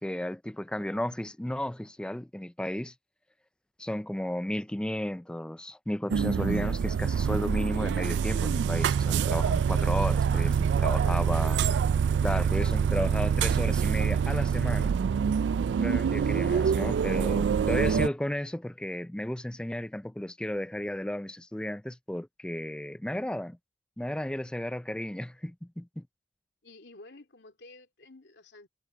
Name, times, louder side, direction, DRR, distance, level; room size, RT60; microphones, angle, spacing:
voice 1, 0.0-2.9 3.8-11.6 12.2-14.9 15.8-23.6 24.0-26.0, left 1 dB, 5° left, 0.3 m, -33 dB
sound 1, 6.1-18.1, right 7 dB, 85° right, 0.3 m, -26 dB
voice 2, 10.3-11.3 16.2-16.8 26.6-28.7, left 2 dB, 85° left, 2.7 m, -50 dB
head